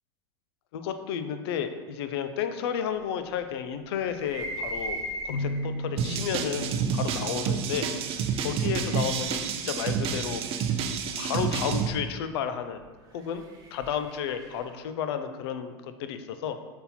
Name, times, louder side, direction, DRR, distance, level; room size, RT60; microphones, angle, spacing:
voice 1, 0.7-7.9 8.4-10.4 11.2-12.8 13.1-13.4 13.7-16.6, left 8 dB, 65° left, 9 dB, 0.6 m, -32 dB
sound 1, 4.1-5.8 6.6-6.7 8.0-10.9 13.0-14.7, right 1 dB, 25° right, 1.3 m, -39 dB
sound 2, 5.3-9.0, equal, 80° left, 1.7 m, -36 dB
sound 3, 6.0-11.9, right 7 dB, 45° right, 0.6 m, -29 dB
5.6 x 4.1 x 4.3 m, 1.3 s
hypercardioid pair, 85°, 14 cm